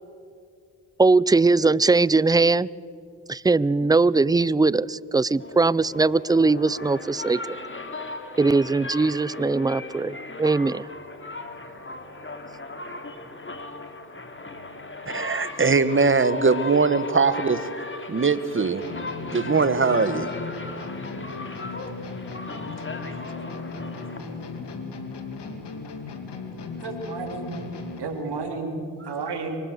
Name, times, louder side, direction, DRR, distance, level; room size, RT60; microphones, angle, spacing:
voice 1, 1.0-2.7 3.3-7.6 8.4-10.8, right 3 dB, 10° right, 0.4 m, -20 dB
sound 1, 5.4-24.8, left 2 dB, 30° left, 2.6 m, -37 dB
voice 2, 15.1-17.6 18.1-18.8 19.3-20.3, right 4 dB, 30° right, 1.5 m, -21 dB
sound 2, 18.8-28.2, left 4 dB, 75° left, 2.6 m, -36 dB
voice 3, 26.8-27.6 28.0-28.8 29.0-29.6, right 4 dB, 65° right, 3.3 m, -31 dB
24.0 x 19.5 x 6.8 m
supercardioid pair, 50°, 42 cm